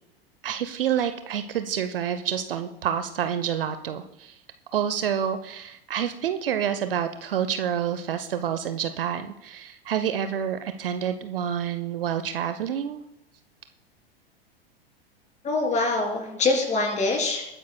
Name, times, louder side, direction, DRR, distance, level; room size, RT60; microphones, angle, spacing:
voice 1, 0.4-4.4 4.7-13.0, right 9 dB, 65° right, 9 dB, 0.8 m, -28 dB
voice 2, 15.4-17.4, left 3 dB, 25° left, 2 dB, 3.4 m, -24 dB
20.5 x 9.3 x 2.2 m, 0.86 s
figure-of-eight pair, 90°, 31 cm